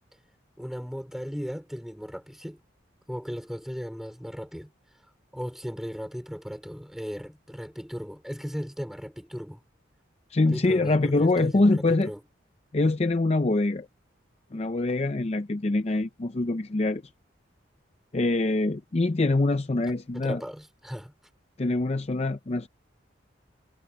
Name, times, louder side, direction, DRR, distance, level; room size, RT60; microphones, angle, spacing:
voice 1, 0.6-2.6 3.1-4.7 5.3-9.6 10.5-12.2 20.1-21.1, equal, ahead, 4.1 m, -37 dB
voice 2, 10.3-12.1 12.7-13.9 14.5-17.0 18.1-20.4 21.6-22.7, left 2 dB, 35° left, 0.6 m, -24 dB
head